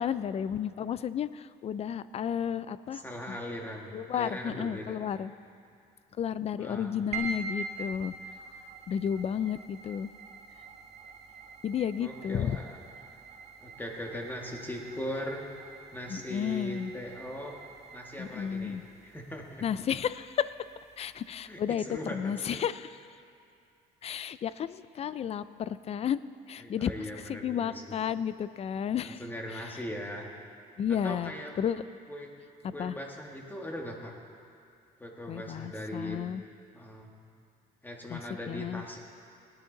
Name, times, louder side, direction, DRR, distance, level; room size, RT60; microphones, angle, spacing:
voice 1, 0.0-3.4 3.9-5.3 6.2-8.1 8.9-10.1 11.6-12.6 16.1-16.9 18.2-18.8 19.6-20.5 21.0-23.0 24.0-26.2 26.5-29.2 29.5-29.7 30.8-31.3 31.6-31.8 32.6-33.0 35.3-36.4 38.1-38.2 38.5-38.8, left 8 dB, 40° left, 15 dB, 0.4 m, -32 dB
voice 2, 2.9-5.0 6.6-7.1 12.0-12.7 13.6-15.4 15.9-17.6 17.9-19.6 21.5-22.6 26.6-28.0 29.0-30.3 30.9-31.5 32.1-32.3 32.7-34.1 35.0-36.2 36.7-37.1 37.8-39.0, equal, 10° left, 0 dB, 1.7 m, -39 dB
sound 1, 7.1-21.6, right 4 dB, 40° right, 1.2 m, -45 dB
18.5 x 9.9 x 3.9 m, 2.5 s
cardioid pair, 110°, 17 cm